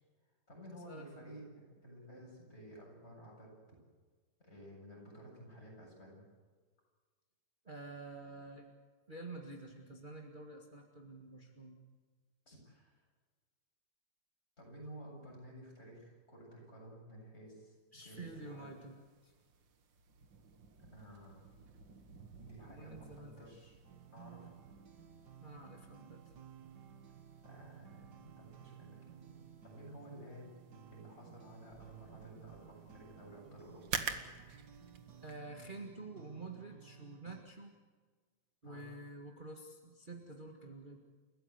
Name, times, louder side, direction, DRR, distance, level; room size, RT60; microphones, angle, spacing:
voice 1, 0.5-3.5 4.4-6.2 12.5-13.0 14.6-17.7 18.0-18.8 20.9-21.4 22.4-23.7 24.1-24.5 27.4-29.4 29.6-34.0 38.6-38.9, right 1 dB, 35° left, -2 dB, 8.1 m, -53 dB
voice 2, 7.6-8.7 9.1-11.8 17.9-19.3 22.6-23.6 25.4-26.2 35.2-37.7 38.6-41.0, right 2 dB, 25° right, 1 dB, 1.9 m, -49 dB
sound 1, 18.0-35.4, right 6 dB, 85° right, 2.2 m, -50 dB
sound 2, 23.8-37.4, right 8 dB, 65° right, 2.1 m, -57 dB
29.5 x 15.0 x 8.1 m, 1.5 s
omnidirectional pair, 2.0 m